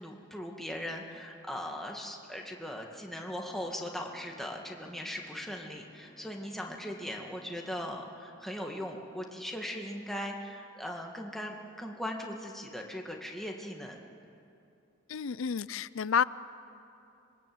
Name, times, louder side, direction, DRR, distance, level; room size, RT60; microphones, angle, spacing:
voice 1, 0.0-14.0, equal, ahead, 0 dB, 1.9 m, -39 dB
sound 1, 2.9-7.9, equal, 70° right, 5.5 m, -60 dB
voice 2, 15.1-16.2, left 7 dB, 80° left, 17 dB, 0.5 m, -29 dB
26.0 x 21.5 x 7.8 m, 2.6 s
head